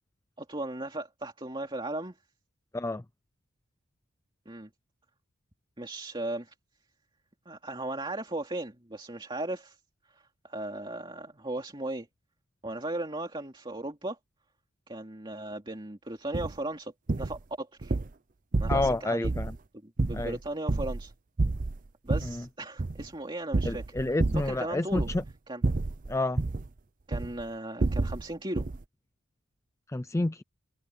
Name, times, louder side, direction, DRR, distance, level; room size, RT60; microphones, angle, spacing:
voice 1, 0.4-2.1 4.5-4.7 5.8-6.5 7.5-9.8 10.1-12.1 12.6-14.2 14.9-16.9 17.2-18.0 18.6-19.3 19.8-21.1 22.0-23.8 24.4-25.1 25.5-25.6 27.1-28.7, right 1 dB, 20° right, 2.8 m, -36 dB
sound 1, 16.3-16.5 17.1-17.4 17.8-18.1 18.5-19.0 19.2-19.6 20.0-21.1 21.4-22.4 22.8-23.1 23.5-24.6 24.9-25.3 25.6-26.7 27.1-27.4 27.8-28.2 28.6-28.8, right 2 dB, 35° right, 0.6 m, -29 dB
voice 2, 18.7-19.5 20.1-20.4 22.2-22.4 23.7-25.2 26.1-26.4 29.9-30.4, left 2 dB, 15° left, 0.4 m, -29 dB
head